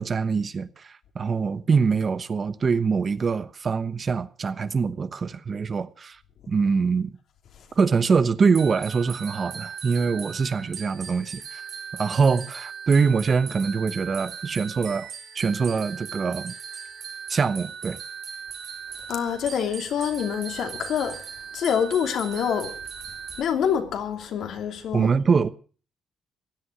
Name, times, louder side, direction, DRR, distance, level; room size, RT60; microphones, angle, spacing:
voice 1, 0.0-6.2 6.5-7.1 7.8-11.6 11.9-15.1 15.3-16.5 17.3-18.0 24.9-25.5, right 5 dB, 40° right, 1.0 m, -24 dB
sound 1, 8.6-23.4, right 7 dB, 55° right, 3.4 m, -38 dB
voice 2, 19.1-21.2 21.5-22.7 23.4-25.1, left 8 dB, 70° left, 2.8 m, -26 dB
16.5 x 11.0 x 6.2 m
cardioid pair, 90°, 0 cm